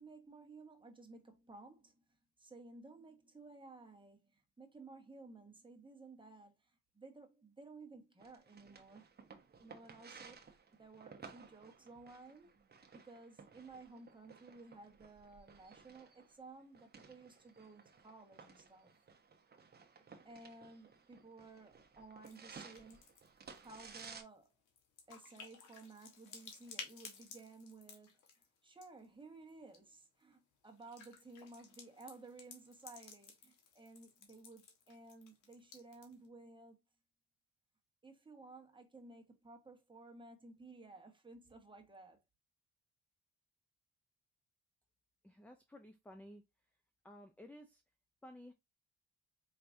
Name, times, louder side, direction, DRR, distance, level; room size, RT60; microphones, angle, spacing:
voice 1, 0.0-2.0 2.4-9.1 9.6-10.5 10.7-12.5 12.9-18.9 19.9-23.0 23.6-24.5 25.1-36.8 38.0-42.2, right 3 dB, 15° right, 1.3 m, -56 dB
sound 1, 8.2-24.2, right 5 dB, 35° right, 0.9 m, -57 dB
sound 2, 22.2-22.4 22.6-29.0 29.5-29.8 30.6-36.3, left 5 dB, 85° left, 1.2 m, -55 dB
voice 2, 45.2-46.4 47.0-47.8 48.2-48.5, left 1 dB, 5° left, 0.5 m, -54 dB
4.7 x 3.2 x 2.6 m
cardioid pair, 90°, 30 cm